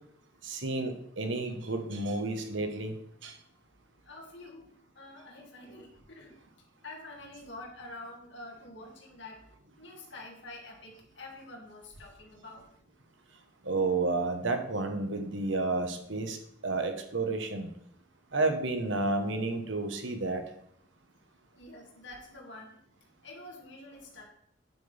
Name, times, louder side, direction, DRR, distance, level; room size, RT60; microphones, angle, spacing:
voice 1, 0.4-2.9 3.2-3.3 13.6-16.4 16.6-17.7 18.3-20.4, right 3 dB, 75° right, 6 dB, 1.2 m, -31 dB
voice 2, 4.0-4.7 4.9-6.4 6.8-9.4 9.8-12.6 21.6-22.7 23.2-24.2, left 2 dB, 70° left, 0 dB, 2.3 m, -47 dB
9.3 x 8.1 x 3.5 m, 0.72 s
head